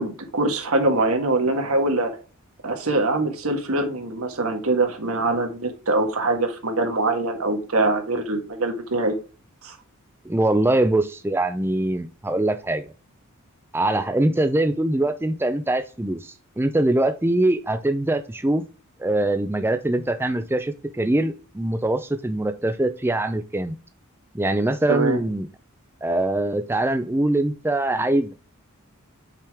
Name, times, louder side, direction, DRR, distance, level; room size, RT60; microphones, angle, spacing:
voice 1, 0.0-2.1 2.6-9.1 9.6-9.7 24.9-25.2, right 2 dB, 75° right, 5 dB, 1.5 m, -23 dB
voice 2, 10.2-12.9 13.7-18.6 19.0-23.8 24.3-25.5 26.0-28.3, right 1 dB, 10° right, 9 dB, 0.4 m, -23 dB
5.8 x 4.9 x 3.5 m, 0.34 s
head